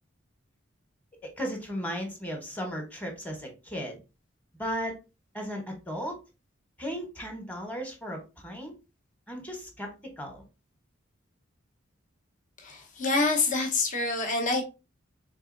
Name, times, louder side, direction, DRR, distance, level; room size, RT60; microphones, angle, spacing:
voice 1, 1.2-4.0 4.6-5.0 5.3-6.2 6.8-8.7 9.3-9.9 10.2-10.4, equal, 10° left, 2 dB, 1.1 m, -35 dB
voice 2, 12.6-14.6, left 3 dB, 40° left, 1 dB, 0.9 m, -26 dB
3.9 x 3.5 x 2.6 m, 0.28 s
head